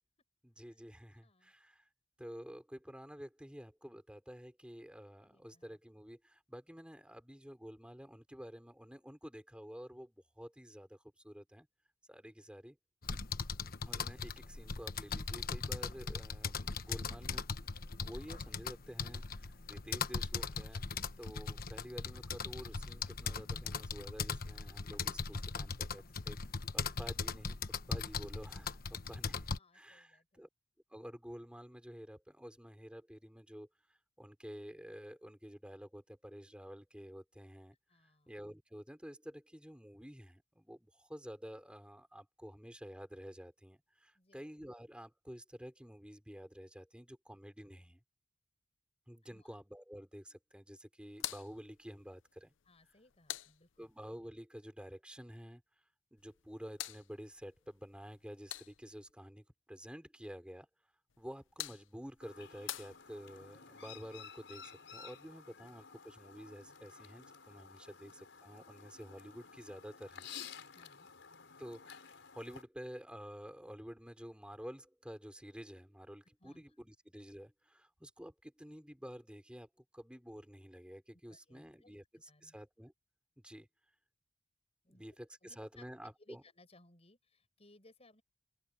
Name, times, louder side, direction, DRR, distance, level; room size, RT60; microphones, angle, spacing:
voice 1, 0.4-1.8 2.2-11.0 11.2-11.7 12.1-12.8 13.9-20.8 21.2-26.4 26.7-27.6 27.9-30.5 30.9-33.7 34.2-37.8 38.3-48.0 49.1-52.5 53.8-55.6 56.1-60.7 61.2-70.3 71.6-79.7 79.9-82.0 82.4-82.9 83.4-83.7 84.9-86.4, equal, 5° right, 5.2 m, -50 dB
voice 2, 1.1-1.5 5.2-5.8 12.1-12.5 29.0-29.1 29.5-30.5 37.9-38.3 44.1-44.5 49.3-49.6 52.6-53.9 70.7-71.1 76.4-76.6 81.1-82.6 84.8-85.0 85.4-88.2, left 2 dB, 35° left, 8.0 m, -65 dB
sound 1, 13.0-29.6, left 5 dB, 50° left, 1.2 m, -39 dB
sound 2, 51.1-54.2 56.2-59.1 61.1-63.6, left 13 dB, 90° left, 0.7 m, -48 dB
Chirp tweet, 62.2-72.6, left 7 dB, 70° left, 6.3 m, -53 dB
open air
head